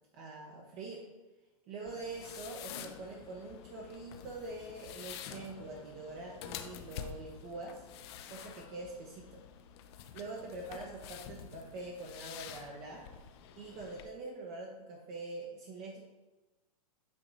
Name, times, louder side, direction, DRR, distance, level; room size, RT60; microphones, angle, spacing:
voice 1, 0.1-1.0 1.7-7.9 8.3-9.4 10.1-13.1 13.5-16.0, right 2 dB, 40° right, 0 dB, 0.9 m, -44 dB
sound 1, 1.9-14.1, left 9 dB, 45° left, 0.5 m, -48 dB
8.6 x 3.0 x 3.9 m, 1.1 s
hypercardioid pair, 125°, 19 cm